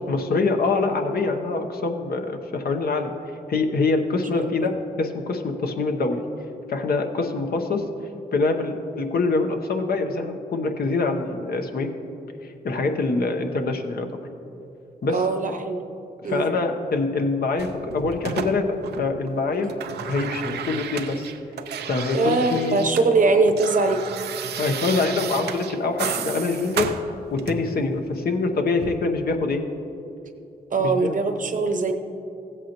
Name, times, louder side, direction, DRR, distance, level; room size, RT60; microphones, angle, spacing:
voice 1, 0.1-3.1 3.5-6.2 6.7-7.8 8.3-11.9 12.4-14.1 15.0-15.2 16.3-19.7 20.1-21.3 21.9-22.8 24.6-26.9 27.3-29.6 30.8-31.2, left 3 dB, 65° left, 5 dB, 0.9 m, -24 dB
voice 2, 15.1-15.8 16.2-16.4 19.6-19.7 22.1-24.0 30.7-31.9, right 3 dB, 50° right, 6 dB, 0.9 m, -22 dB
sound 1, 17.6-19.3 19.5-23.1 23.3-27.8 28.8-29.0, right 7 dB, 85° right, 0.5 m, -33 dB
15.5 x 8.1 x 3.0 m, 2.8 s
cardioid pair, 60°, 17 cm